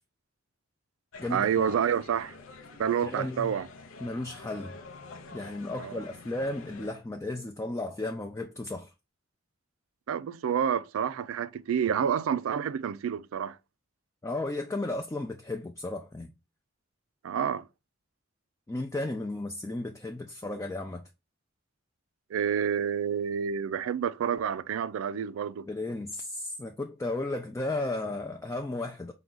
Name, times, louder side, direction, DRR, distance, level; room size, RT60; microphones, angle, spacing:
sound 1, 1.1-6.9, left 3 dB, 85° left, 0.6 m, -47 dB
voice 1, 1.3-2.3 2.8-3.7 5.8-6.0 10.1-13.6 17.2-17.7 22.3-25.7, right 8 dB, 90° right, 0.3 m, -29 dB
voice 2, 3.0-3.5 4.0-4.7 5.3-8.9 14.2-16.3 18.7-21.0 25.7-29.1, left 2 dB, 15° left, 0.3 m, -34 dB
4.7 x 2.3 x 3.8 m
head